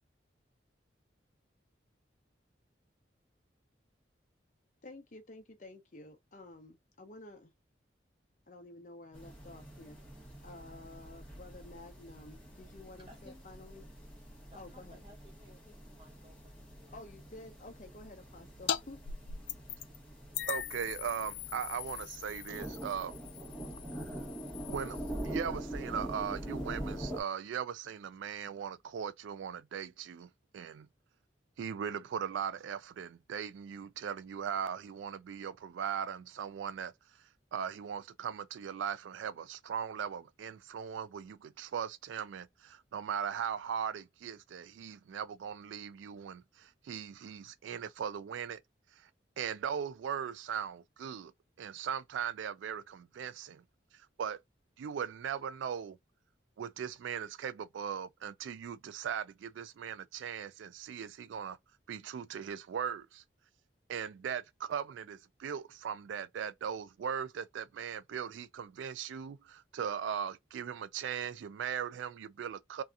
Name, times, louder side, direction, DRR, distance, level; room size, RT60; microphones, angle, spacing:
voice 1, 4.8-7.5 8.5-10.0 10.4-13.8 14.6-15.0 16.9-19.0, left 2 dB, 40° left, 0.7 m, -51 dB
sound 1, 9.1-27.2, right 1 dB, 5° left, 0.9 m, -44 dB
voice 2, 13.1-13.4 14.5-17.0, equal, 25° right, 1.0 m, -59 dB
sound 2, 18.7-18.8 19.1-20.0 20.3-25.4, left 9 dB, 75° left, 0.3 m, -41 dB
voice 3, 20.5-23.1 24.0-24.1 24.7-30.3 30.5-30.9 31.6-36.9 37.5-48.6 49.0-49.1 49.4-51.3 51.6-53.6 54.2-54.4 54.8-56.0 56.6-61.6 61.9-63.2 63.9-72.8, right 8 dB, 85° right, 0.3 m, -39 dB
2.7 x 2.4 x 2.3 m
head